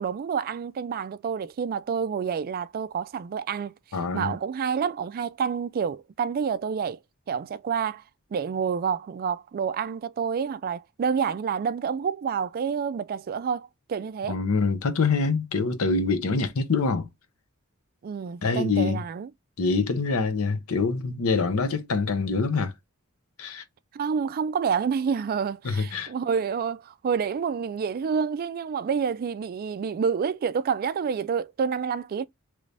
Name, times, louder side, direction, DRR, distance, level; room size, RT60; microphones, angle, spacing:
voice 1, 0.0-3.7 4.1-7.0 7.3-8.0 8.3-14.4 18.0-19.3 23.9-32.2, right 6 dB, 45° right, 0.3 m, -28 dB
voice 2, 3.9-4.3 14.3-17.1 18.4-19.0 19.6-22.7 23.4-23.6 25.6-26.1, left 4 dB, 75° left, 0.7 m, -25 dB
3.1 x 2.6 x 3.2 m
head